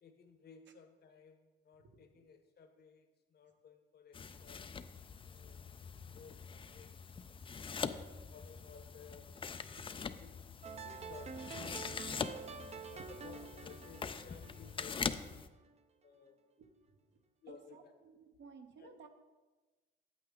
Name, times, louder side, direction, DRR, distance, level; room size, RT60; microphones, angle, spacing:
voice 1, 0.0-4.7 5.2-5.8 6.1-6.4 6.7-7.0 7.8-9.3 10.0-10.4 10.8-12.5 12.9-14.9 16.0-16.4 17.4-17.9 18.8-18.9, left 6 dB, 55° left, 7 dB, 1.0 m, -57 dB
voice 2, 1.8-2.3 9.8-9.9 14.4-14.5 17.1-17.2 17.5-19.1, right 5 dB, 65° right, 6 dB, 1.0 m, -57 dB
sound 1, 4.1-15.5, left 6 dB, 25° left, 0.4 m, -43 dB
sound 2, 10.6-15.7, right 6 dB, 35° right, 0.5 m, -48 dB
8.7 x 7.7 x 3.8 m, 1.2 s
cardioid pair, 90°, 20 cm